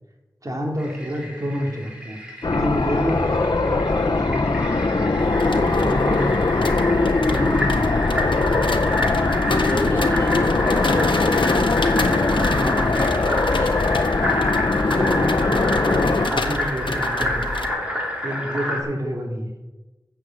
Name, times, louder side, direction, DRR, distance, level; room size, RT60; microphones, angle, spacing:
voice 1, 0.4-5.0 5.4-6.6 7.1-8.3 12.0-12.9 14.9-17.4 18.2-19.5, equal, 45° right, 1 dB, 2.6 m, -29 dB
Fill (with liquid), 0.8-18.8, left 1 dB, 10° right, 3.7 m, -28 dB
sound 1, 2.4-16.3, left 3 dB, 60° left, 0.8 m, -21 dB
sound 2, 5.2-17.7, left 3 dB, 80° left, 1.0 m, -29 dB
voice 2, 9.4-14.5, left 1 dB, 30° left, 0 dB, 3.1 m, -31 dB
12.0 x 7.7 x 8.2 m, 1.2 s
wide cardioid pair, 60°, 8 cm